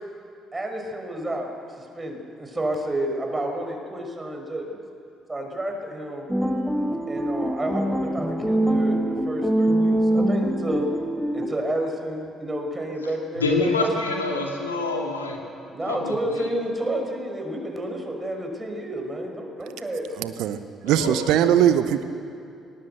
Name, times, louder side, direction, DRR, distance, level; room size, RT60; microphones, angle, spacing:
voice 1, 0.5-1.5 1.8-4.8 5.3-6.3 7.1-10.9 11.3-13.9 15.7-20.0 20.8-21.3, right 1 dB, 20° right, 2 dB, 5.8 m, -30 dB
sound 1, 6.3-11.5, right 1 dB, 5° right, 2.0 m, -23 dB
voice 2, 13.4-15.4 15.9-16.5 20.9-21.7, left 2 dB, 90° left, 0 dB, 2.6 m, -27 dB
voice 3, 20.1-20.6 20.8-22.0, right 10 dB, 65° right, 11 dB, 0.9 m, -20 dB
19.5 x 18.5 x 8.1 m, 2.5 s
figure-of-eight pair, 45°, 0 cm